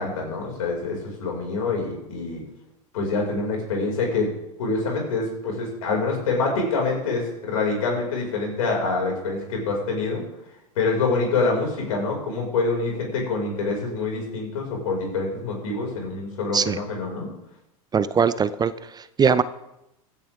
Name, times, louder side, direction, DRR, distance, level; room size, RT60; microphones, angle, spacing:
voice 1, 0.0-2.4 2.9-4.3 4.6-10.2 10.8-17.3, left 3 dB, 75° left, -1 dB, 5.7 m, -26 dB
voice 2, 17.9-19.4, right 6 dB, 20° right, 15 dB, 0.6 m, -21 dB
15.5 x 10.5 x 3.6 m, 0.87 s
hypercardioid pair, 90°, 18 cm